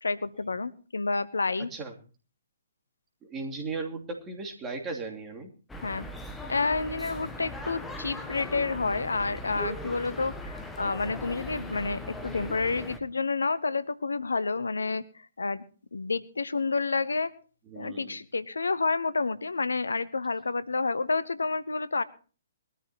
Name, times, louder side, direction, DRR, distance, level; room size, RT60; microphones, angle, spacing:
voice 1, 0.0-1.7 5.8-6.1 6.5-15.6 15.9-17.3 17.8-22.0, left 4 dB, 70° left, 16 dB, 0.9 m, -29 dB
voice 2, 3.2-5.5 17.7-18.2, right 4 dB, 20° right, 2 dB, 2.9 m, -36 dB
sound 1, 5.7-13.0, left 1 dB, 5° left, 1.8 m, -39 dB
21.5 x 13.5 x 3.0 m, 0.37 s
figure-of-eight pair, 125°, 0 cm